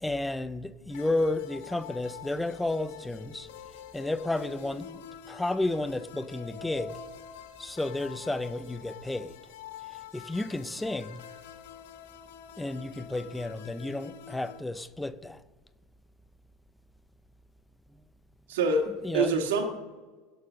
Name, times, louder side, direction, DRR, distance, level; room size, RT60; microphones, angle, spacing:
voice 1, 0.0-3.5 3.9-7.0 7.6-9.4 10.1-11.2 12.6-15.4 19.0-19.4, left 2 dB, 5° left, 0.5 m, -32 dB
sound 1, 0.9-14.6, left 9 dB, 75° left, 1.1 m, -47 dB
voice 2, 18.5-19.6, right 3 dB, 85° right, 1.9 m, -26 dB
16.5 x 6.8 x 6.3 m
supercardioid pair, 155°, 0 cm